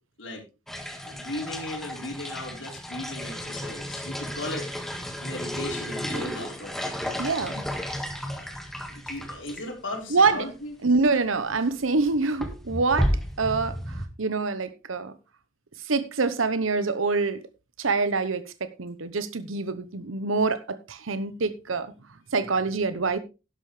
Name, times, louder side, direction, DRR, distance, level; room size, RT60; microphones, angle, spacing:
sound 1, 0.7-9.6 9.9-10.0 10.2-10.3 11.4-11.6 12.0-14.1, equal, ahead, 1.6 m, -33 dB
voice 1, 1.0-4.7 5.2-6.7 8.3-8.5 8.9-10.7, left 2 dB, 75° left, 4.2 m, -37 dB
voice 2, 7.2-7.7 10.1-10.5 10.8-15.1 15.8-17.4 17.8-21.9 22.3-23.2, right 4 dB, 85° right, 0.9 m, -26 dB
11.5 x 11.5 x 3.3 m
head